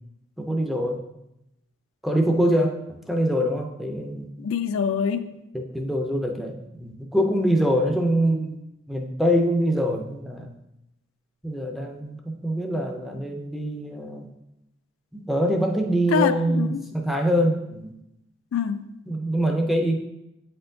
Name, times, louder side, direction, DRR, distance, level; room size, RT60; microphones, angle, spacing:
voice 1, 0.4-1.0 2.0-2.8 3.1-4.3 5.5-8.6 8.9-10.5 11.4-14.3 15.1-17.9 19.1-20.0, equal, ahead, 0.4 m, -24 dB
voice 2, 4.4-5.3 16.1-16.9 18.5-19.0, left 6 dB, 70° left, 0.3 m, -25 dB
8.3 x 4.3 x 2.6 m
head